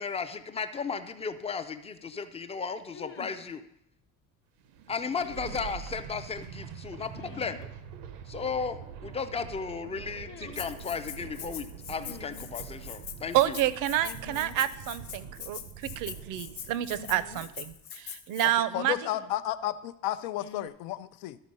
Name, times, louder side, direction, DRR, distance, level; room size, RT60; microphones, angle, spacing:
voice 1, 0.0-3.6 4.9-7.6 8.3-13.6, left 5 dB, 20° left, 10 dB, 0.3 m, -35 dB
sound 1, 1.0-1.1 2.9-3.5 5.2-5.7 7.1-7.7 10.2-10.8 11.9-12.6 14.0-14.7 14.9-15.0 16.9-17.8 18.7-19.3 20.4-20.7, left 5 dB, 35° left, 0.7 m, -47 dB
sound 2, 4.6-17.7, right 7 dB, 85° right, 0.8 m, -45 dB
Rattle (instrument), 10.5-18.5, left 9 dB, 55° left, 1.0 m, -43 dB
voice 2, 13.3-15.2 15.5-19.0, right 13 dB, 60° right, 15 dB, 0.6 m, -29 dB
voice 3, 18.7-21.4, left 13 dB, 90° left, 13 dB, 0.6 m, -32 dB
12.5 x 4.4 x 5.3 m, 0.78 s
cardioid pair, 145°, 36 cm